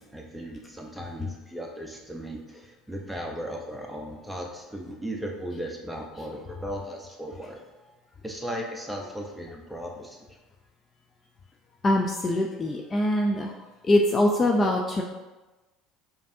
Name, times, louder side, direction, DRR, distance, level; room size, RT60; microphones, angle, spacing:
voice 1, 0.0-7.6 8.2-10.2, equal, ahead, 0 dB, 0.8 m, -36 dB
voice 2, 11.8-13.5 13.8-15.0, left 1 dB, 30° left, 0 dB, 0.4 m, -23 dB
5.1 x 2.6 x 2.7 m, 1.1 s
hypercardioid pair, 70°, 0 cm